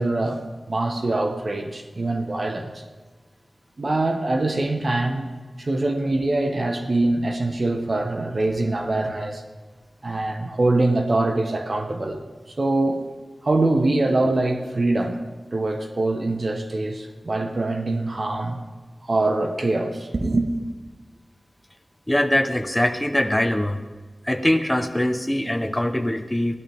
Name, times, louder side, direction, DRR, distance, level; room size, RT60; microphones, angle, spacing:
voice 1, 0.0-2.8 3.8-5.3 5.6-9.4 10.0-12.2 12.6-13.1 13.4-15.2 15.5-18.6 19.0-20.5, right 2 dB, 60° right, 1.3 m, -23 dB
voice 2, 22.1-23.8 24.2-26.6, left 1 dB, 10° left, 1.0 m, -22 dB
17.0 x 12.5 x 3.6 m
cardioid pair, 45°, 0 cm